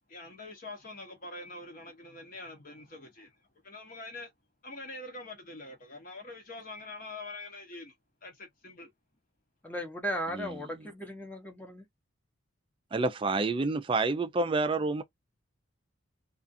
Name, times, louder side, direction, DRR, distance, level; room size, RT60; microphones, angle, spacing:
voice 1, 0.1-3.3 3.6-4.3 4.6-7.9 8.2-8.9, left 2 dB, 45° left, 0.8 m, -44 dB
voice 2, 9.6-11.8, equal, 10° left, 0.7 m, -36 dB
voice 3, 12.9-15.0, right 3 dB, 25° right, 0.3 m, -28 dB
2.4 x 2.4 x 2.5 m
head